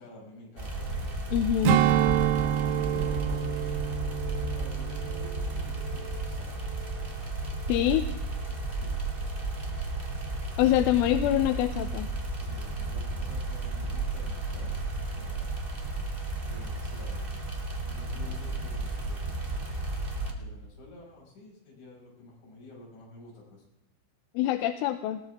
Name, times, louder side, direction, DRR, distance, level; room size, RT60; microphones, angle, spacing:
voice 1, 0.0-1.5 2.9-3.5 4.5-6.6 8.7-9.0 12.3-15.5 16.4-17.3 17.8-19.6 20.3-23.6, left 2 dB, 65° left, -4 dB, 8.0 m, -50 dB
sound 1, 0.6-20.3, right 2 dB, 40° right, 0.8 m, -33 dB
voice 2, 1.3-1.8 7.7-8.1 10.6-12.1 24.3-25.2, left 13 dB, 85° left, 8 dB, 3.3 m, -25 dB
Strum, 1.6-6.4 6.7-7.0, right 11 dB, 85° right, 2.3 m, -28 dB
sound 2, 12.8-15.6 15.9-16.4 17.1-20.5 20.8-21.2, right 3 dB, 55° right, 4.2 m, -53 dB
21.0 x 18.5 x 3.5 m, 0.88 s
omnidirectional pair, 5.5 m